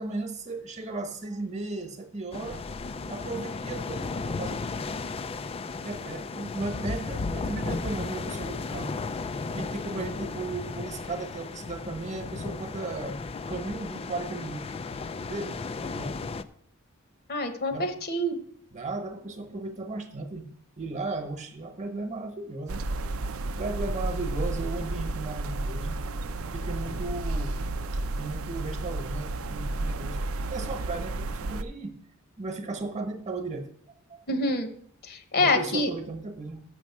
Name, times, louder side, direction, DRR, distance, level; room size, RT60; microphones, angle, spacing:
voice 1, 0.0-2.6 3.1-4.7 5.8-9.0 9.5-13.2 13.5-14.8 15.3-15.6 15.8-16.2 17.7-17.9 18.7-20.5 20.8-22.8 23.6-26.0 26.4-27.6 28.2-32.0 32.4-33.7 34.1-34.2 35.4-36.6, right 3 dB, 35° right, 6 dB, 1.2 m, -36 dB
sound 1, 2.3-16.4, left 4 dB, 30° left, 0.4 m, -35 dB
voice 2, 17.3-18.4 34.3-34.7 35.0-35.9, left 2 dB, 45° left, 8 dB, 1.1 m, -26 dB
sound 2, 22.7-31.6, right 2 dB, 75° right, 0.5 m, -32 dB
7.1 x 6.3 x 7.2 m, 0.64 s
head